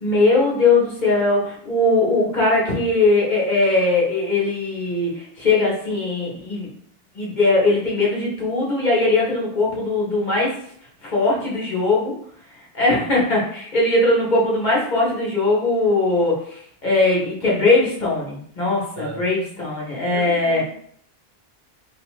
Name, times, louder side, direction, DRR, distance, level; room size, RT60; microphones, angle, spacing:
voice 1, 0.0-6.7 7.1-10.5 11.0-12.1 12.7-20.6, left 2 dB, 50° left, -4 dB, 1.1 m, -20 dB
voice 2, 20.1-20.7, right 2 dB, 70° right, 0 dB, 0.9 m, -31 dB
2.8 x 2.5 x 3.1 m, 0.63 s
omnidirectional pair, 1.0 m